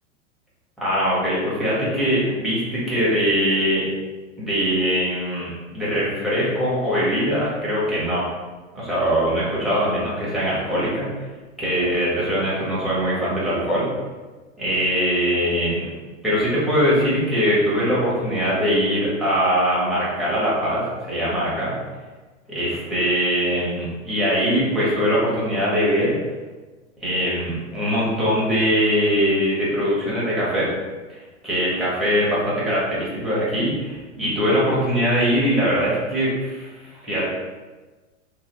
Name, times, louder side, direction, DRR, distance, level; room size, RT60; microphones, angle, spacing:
voice 1, 0.8-3.8 4.4-8.3 8.7-11.1 11.6-13.9 14.6-15.9 16.2-21.7 22.5-26.2 27.0-30.7 31.1-31.2 31.4-36.7 37.0-37.3, equal, ahead, -9 dB, 0.6 m, -22 dB
3.1 x 2.2 x 2.9 m, 1.3 s
supercardioid pair, 145°, 40 cm